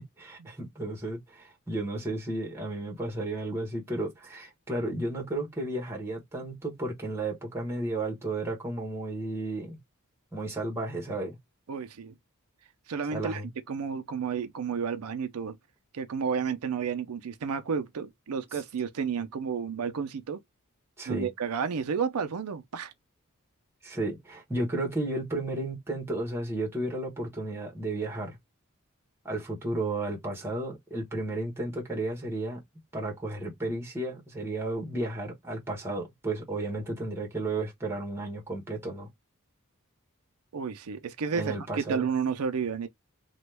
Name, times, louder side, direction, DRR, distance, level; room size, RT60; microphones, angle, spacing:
voice 1, 0.2-9.8 10.3-11.4 13.1-13.5 21.0-21.3 23.8-28.4 29.2-32.6 32.9-39.1 41.3-42.1, right 2 dB, 10° right, 1.2 m, -33 dB
voice 2, 11.7-12.1 12.9-13.4 13.7-15.6 15.9-20.4 21.1-22.9 40.5-42.9, right 6 dB, 85° right, 0.5 m, -31 dB
3.0 x 2.3 x 3.3 m
head